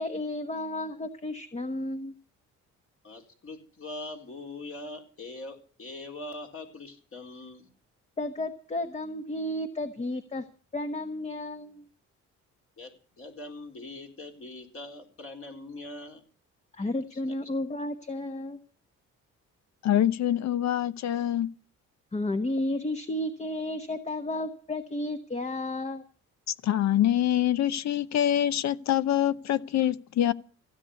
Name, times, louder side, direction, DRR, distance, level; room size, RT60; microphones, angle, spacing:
voice 1, 0.0-2.1 8.2-10.5 10.7-11.8 16.8-18.6 22.1-26.0, left 1 dB, 20° left, 1.1 m, -32 dB
voice 2, 3.0-7.7 12.8-12.9 13.2-16.2 17.3-17.5, left 2 dB, 45° left, 3.8 m, -42 dB
voice 3, 19.8-21.5 26.5-30.3, left 11 dB, 65° left, 0.8 m, -25 dB
16.0 x 8.1 x 8.3 m
cardioid pair, 90°, 30 cm